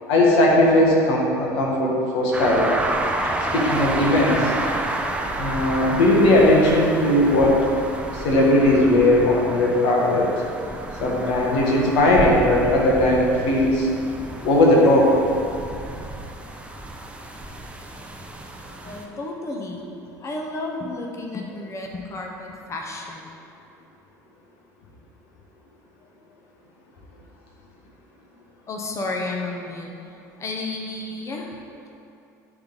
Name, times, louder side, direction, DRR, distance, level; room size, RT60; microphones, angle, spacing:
voice 1, 0.1-2.7 3.5-4.5 5.4-7.6 8.1-10.3 11.0-13.9 14.4-15.1, left 1 dB, 65° left, -3 dB, 1.6 m, -18 dB
sound 1, 2.3-19.1, right 2 dB, 10° right, 0.7 m, -30 dB
voice 2, 18.8-19.9 20.2-23.3 28.7-29.9 30.4-31.5, left 2 dB, 30° left, 1 dB, 1.0 m, -32 dB
9.9 x 3.7 x 4.0 m, 2.7 s
hypercardioid pair, 75°, 9 cm